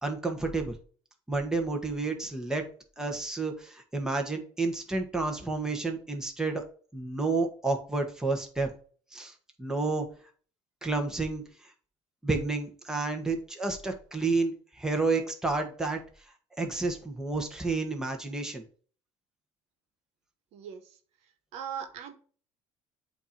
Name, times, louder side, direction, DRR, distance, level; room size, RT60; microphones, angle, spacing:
voice 1, 0.0-0.7 1.3-2.6 3.0-6.6 6.9-8.7 9.1-9.3 9.6-10.1 10.8-11.4 12.2-16.0 16.6-18.6, right 3 dB, 5° right, 2 dB, 1.5 m, -30 dB
voice 2, 20.5-21.0 21.5-22.1, right 8 dB, 75° right, 7 dB, 1.2 m, -39 dB
8.0 x 3.0 x 5.2 m, 0.42 s
cardioid pair, 110°, 11 cm